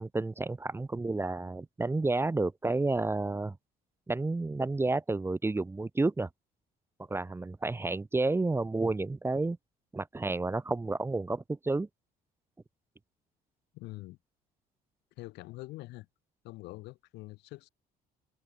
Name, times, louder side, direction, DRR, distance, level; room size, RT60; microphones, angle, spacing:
voice 1, 0.0-3.6 4.1-6.3 7.1-9.6 9.9-11.9, right 2 dB, 15° right, 1.0 m, -30 dB
voice 2, 13.7-14.2 15.2-16.1 16.4-17.7, left 20 dB, 90° left, 4.6 m, -44 dB
open air
cardioid pair, 110°, 17 cm